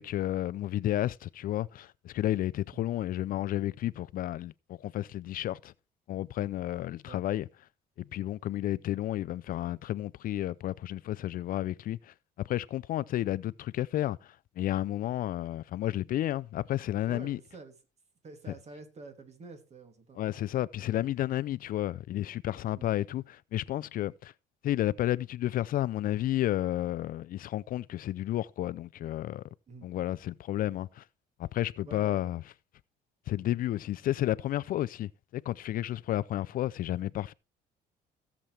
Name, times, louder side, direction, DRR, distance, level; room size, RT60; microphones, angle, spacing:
voice 1, 0.0-5.7 6.1-7.5 8.0-12.1 12.4-17.4 20.2-24.3 24.6-29.4 29.8-31.1 31.4-32.4 33.3-37.3, left 13 dB, 55° left, 0.4 m, -32 dB
voice 2, 17.1-17.7 18.2-20.2 22.7-22.9 29.7-29.9 31.8-32.3, right 3 dB, 40° right, 2.8 m, -48 dB
16.5 x 7.3 x 3.3 m
cardioid pair, 110°, 17 cm